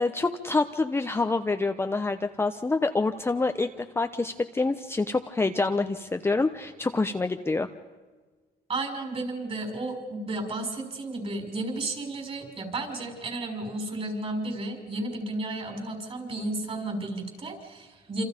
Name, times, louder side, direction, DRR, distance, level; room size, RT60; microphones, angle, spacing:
voice 1, 0.0-7.7, left 3 dB, 15° left, 7 dB, 0.9 m, -27 dB
voice 2, 8.7-18.2, right 2 dB, 35° right, 4 dB, 5.9 m, -33 dB
27.5 x 27.0 x 5.3 m, 1.3 s
cardioid pair, 110°, 17 cm